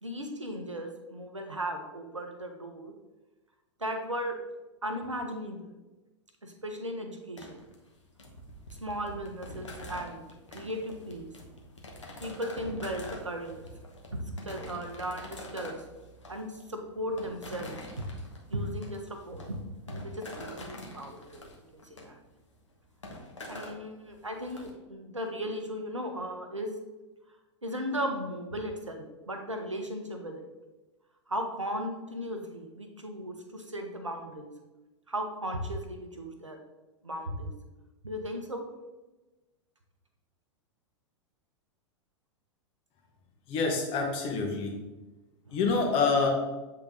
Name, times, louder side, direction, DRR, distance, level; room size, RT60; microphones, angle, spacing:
voice 1, 0.0-2.9 3.8-4.3 4.8-5.7 6.4-7.6 8.8-10.2 10.5-11.3 12.2-13.7 14.1-15.8 16.3-18.1 18.5-19.6 19.9-21.4 21.7-22.2 23.5-26.7 27.6-30.4 31.3-34.5 35.1-36.6 37.0-37.5 38.0-38.6 45.5-45.6, equal, 90° right, 4 dB, 0.9 m, -36 dB
sound 1, 7.4-24.7, left 1 dB, 80° left, 1.2 m, -45 dB
voice 2, 43.5-44.9 45.5-46.3, left 4 dB, 40° left, 1 dB, 1.4 m, -27 dB
7.8 x 3.8 x 3.8 m, 1.1 s
figure-of-eight pair, 95°, 15 cm